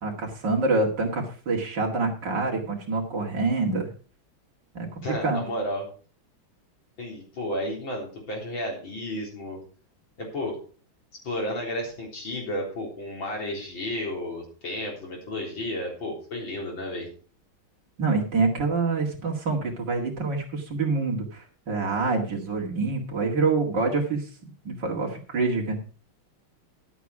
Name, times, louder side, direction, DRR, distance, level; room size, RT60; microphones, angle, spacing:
voice 1, 0.0-3.9 4.7-4.9 5.2-5.4 18.0-24.3 24.6-25.8, right 3 dB, 55° right, 0 dB, 2.8 m, -26 dB
voice 2, 5.0-5.9 7.0-9.6 10.2-10.6 11.2-17.1, left 1 dB, 65° left, -1 dB, 4.6 m, -32 dB
11.5 x 8.3 x 4.8 m, 0.39 s
omnidirectional pair, 2.3 m